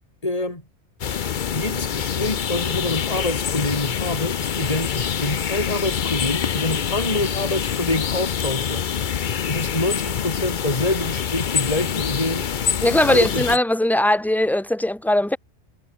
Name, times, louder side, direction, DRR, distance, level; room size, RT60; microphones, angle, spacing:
voice 1, 0.2-0.6 1.5-8.9 9.5-12.5 13.1-13.5, left 2 dB, 30° left, 4.1 m, -26 dB
sound 1, 1.0-13.6, left 8 dB, 50° left, 0.8 m, -25 dB
voice 2, 12.8-15.4, left 1 dB, ahead, 0.6 m, -19 dB
omnidirectional pair, 1.2 m